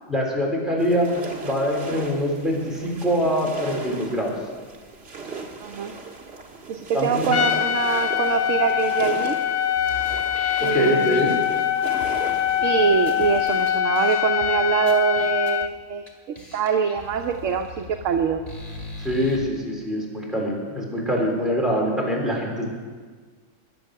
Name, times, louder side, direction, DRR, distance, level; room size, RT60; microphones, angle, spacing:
voice 1, 0.1-4.3 6.9-7.4 10.7-11.4 19.0-22.7, equal, ahead, -3 dB, 3.7 m, -24 dB
sound 1, 0.8-13.8, right 3 dB, 50° right, 1.8 m, -37 dB
voice 2, 5.6-5.9 6.7-9.4 10.6-11.2 12.6-16.0 16.5-18.4, right 7 dB, 75° right, 4 dB, 1.1 m, -24 dB
Trumpet, 7.3-15.7, left 10 dB, 90° left, 0.4 m, -23 dB
sound 2, 9.8-13.3 13.7-13.8 13.9-14.5 14.9-15.7 16.1-16.2 16.3-19.4, equal, 30° left, 2.3 m, -40 dB
22.5 x 8.0 x 6.5 m, 1.5 s
omnidirectional pair, 1.4 m